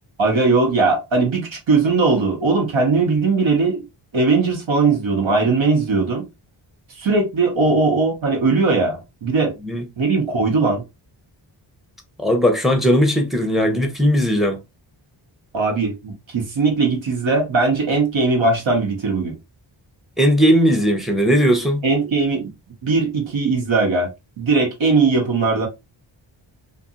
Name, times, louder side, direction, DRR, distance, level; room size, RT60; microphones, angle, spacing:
voice 1, 0.2-3.8 4.1-6.3 7.0-9.5 10.0-10.8 15.5-19.3 21.8-22.5 22.8-24.1 24.4-25.7, right 3 dB, 75° right, 1.2 m, -19 dB
voice 2, 12.2-14.6 20.2-21.8, equal, ahead, 0.8 m, -17 dB
2.6 x 2.6 x 2.4 m
wide cardioid pair, 70°, 48 cm